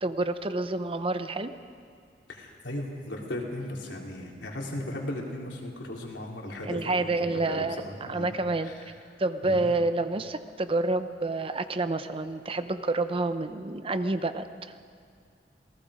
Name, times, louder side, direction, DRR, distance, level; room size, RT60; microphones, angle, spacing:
voice 1, 0.0-1.5 6.6-8.7 9.2-14.5, right 2 dB, 30° right, 10 dB, 0.8 m, -28 dB
voice 2, 2.3-8.3 8.6-8.9 9.4-9.7, left 1 dB, 90° left, -1 dB, 3.7 m, -37 dB
28.0 x 18.5 x 5.1 m, 2.3 s
head